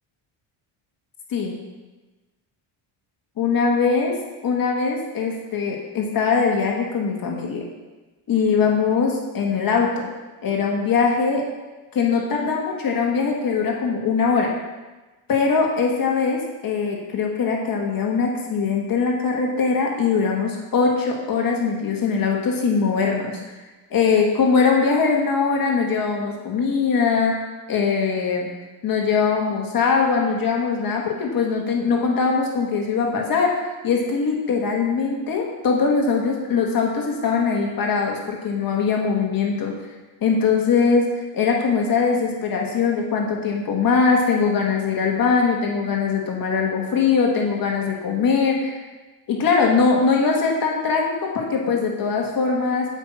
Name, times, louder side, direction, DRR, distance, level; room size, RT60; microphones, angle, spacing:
voice 1, 3.4-4.1 4.4-7.6 8.3-10.1 10.4-11.5 11.9-14.5 15.3-23.3 23.9-27.3 27.7-28.5 28.8-33.6 33.8-39.7 40.2-41.1 41.3-48.8 49.3-52.9, left 5 dB, 50° left, 0 dB, 1.9 m, -21 dB
8.1 x 5.9 x 7.6 m, 1.2 s
cardioid pair, 120°, 45 cm